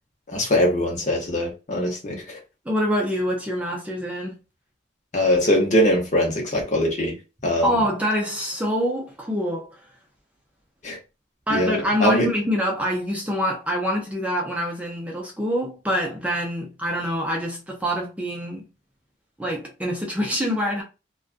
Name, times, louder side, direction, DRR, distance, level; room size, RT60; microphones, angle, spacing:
voice 1, 0.3-2.4 5.1-7.2 7.4-7.8 10.8-11.0 11.5-12.3, left 1 dB, 45° left, 0.9 m, -22 dB
voice 2, 2.7-4.4 7.6-9.8 11.5-18.6 19.4-20.8, equal, 10° right, 0.5 m, -25 dB
2.4 x 2.3 x 2.4 m
head